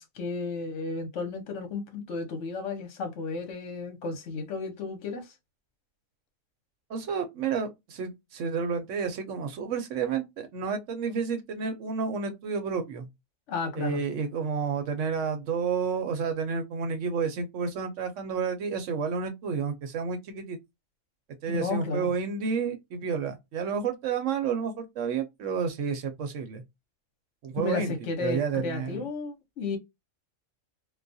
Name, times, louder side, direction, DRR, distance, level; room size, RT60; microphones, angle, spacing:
voice 1, 0.0-5.3 13.5-14.0 21.5-22.1 27.6-29.8, left 4 dB, 70° left, 1.1 m, -33 dB
voice 2, 6.9-13.1 13.8-20.6 21.4-26.6 27.4-27.9 28.2-29.0, right 6 dB, 75° right, 1.0 m, -30 dB
2.4 x 2.3 x 2.6 m
omnidirectional pair, 1.3 m